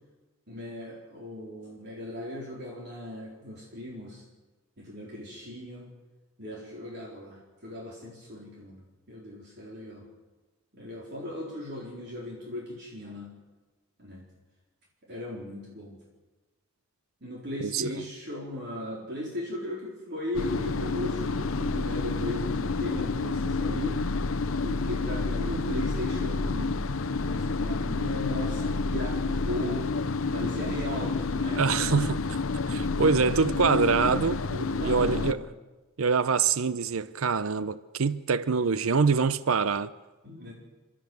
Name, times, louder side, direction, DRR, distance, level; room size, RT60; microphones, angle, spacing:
voice 1, 0.5-4.2 4.8-5.9 6.4-10.0 10.7-13.3 14.0-14.2 15.1-16.0 17.2-24.0 24.6-26.8 27.3-29.9 30.3-32.1 34.5-35.4 40.2-40.5, left 1 dB, 55° right, 4.1 m, -37 dB
sound 1, 20.3-35.3, left 3 dB, 70° left, 0.7 m, -29 dB
voice 2, 31.5-32.2 32.7-34.4 34.8-35.4 36.0-39.9, right 5 dB, 75° right, 0.6 m, -25 dB
30.0 x 13.0 x 7.9 m
head